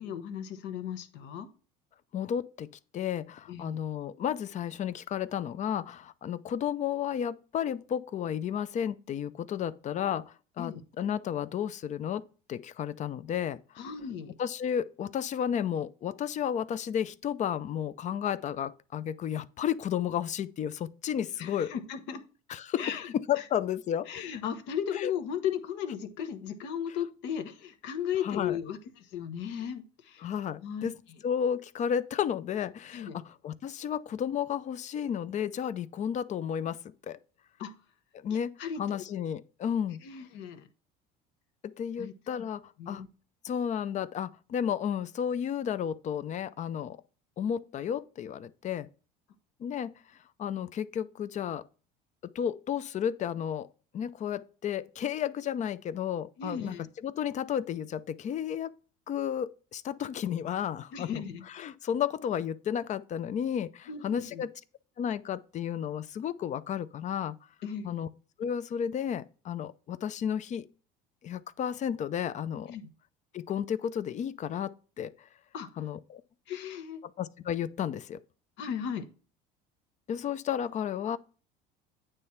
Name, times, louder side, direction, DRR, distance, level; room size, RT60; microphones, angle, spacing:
voice 1, 0.0-1.5 3.5-3.8 10.6-10.8 13.8-14.3 21.4-22.2 22.8-23.5 24.1-30.3 30.6-30.9 32.9-33.2 37.6-37.7 38.3-39.0 40.0-40.7 42.0-42.4 42.8-43.1 56.4-56.9 60.9-61.4 63.9-64.4 67.6-68.0 72.7-72.9 75.5-75.9 76.5-77.0 78.6-79.1, left 8 dB, 70° left, 1.2 m, -36 dB
voice 2, 2.1-13.6 14.4-21.7 22.5-24.1 25.0-25.1 28.2-28.6 30.2-31.0 31.2-37.2 38.2-38.5 38.8-40.0 41.6-43.0 43.4-47.0 47.4-48.9 49.6-50.0 50.4-51.6 52.3-53.7 53.9-56.8 57.0-58.7 59.1-61.1 61.5-64.5 65.0-67.4 67.8-68.1 68.4-70.7 71.2-72.7 73.3-75.1 75.8-76.2 77.2-78.2 80.1-81.2, left 9 dB, 40° left, 0.5 m, -32 dB
9.0 x 3.3 x 5.7 m
supercardioid pair, 100°, 20 cm